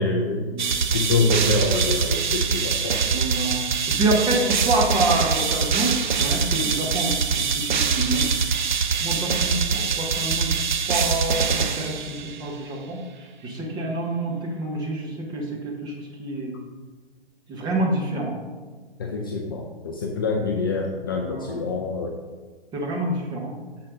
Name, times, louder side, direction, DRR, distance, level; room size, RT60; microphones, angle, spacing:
voice 1, 0.0-0.5 0.9-3.0 19.0-22.2, left 3 dB, 20° left, 2 dB, 0.5 m, -25 dB
sound 1, 0.6-12.5, right 6 dB, 50° right, 0.7 m, -24 dB
voice 2, 3.1-3.6 3.9-8.3 9.0-10.5 10.9-13.0 13.4-16.5 17.5-18.4 21.2-21.6 22.7-23.5, right 1 dB, 15° right, -1 dB, 1.3 m, -27 dB
9.2 x 6.7 x 4.0 m, 1.4 s
figure-of-eight pair, 125°, 31 cm